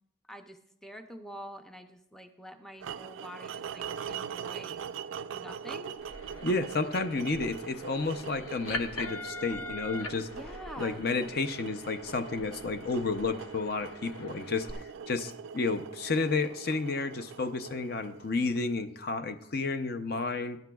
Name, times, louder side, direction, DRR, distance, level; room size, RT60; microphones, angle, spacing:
voice 1, 0.2-4.8 5.3-6.0 10.3-11.0, equal, ahead, 5 dB, 0.5 m, -46 dB
sound 1, 2.8-18.9, right 7 dB, 75° right, 0.3 m, -42 dB
sound 2, 6.0-14.7, left 2 dB, 85° left, 1.0 m, -43 dB
voice 2, 6.4-10.3 10.8-20.6, left 3 dB, 50° left, 9 dB, 0.6 m, -31 dB
18.5 x 10.5 x 2.3 m, 0.78 s
head